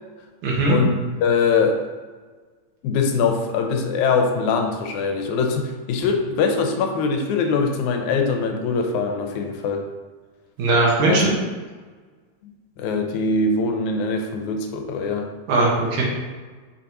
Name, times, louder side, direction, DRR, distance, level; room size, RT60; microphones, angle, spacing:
voice 1, 0.4-0.8 10.6-11.4 15.5-16.0, right 2 dB, 80° right, -4 dB, 2.8 m, -19 dB
voice 2, 1.2-1.8 2.8-9.9 11.1-11.2 12.4-15.3, left 4 dB, 80° left, 4 dB, 2.0 m, -22 dB
6.1 x 6.0 x 3.0 m, 1.4 s
omnidirectional pair, 3.4 m